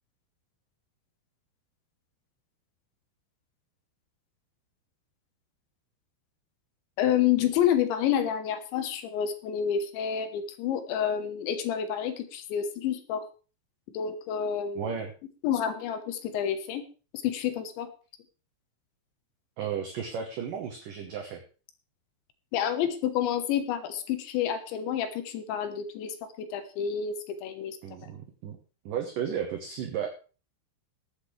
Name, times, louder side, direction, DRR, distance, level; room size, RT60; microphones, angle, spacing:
voice 1, 7.0-13.2 13.9-14.9 15.4-16.8 17.2-17.9 22.5-27.8 28.0-28.1, left 9 dB, 75° left, 9 dB, 3.2 m, -29 dB
voice 2, 14.8-15.1 19.6-21.4 27.8-28.6 28.9-30.1, right 8 dB, 75° right, 3 dB, 2.0 m, -34 dB
21.0 x 8.2 x 3.3 m, 0.36 s
omnidirectional pair, 5.6 m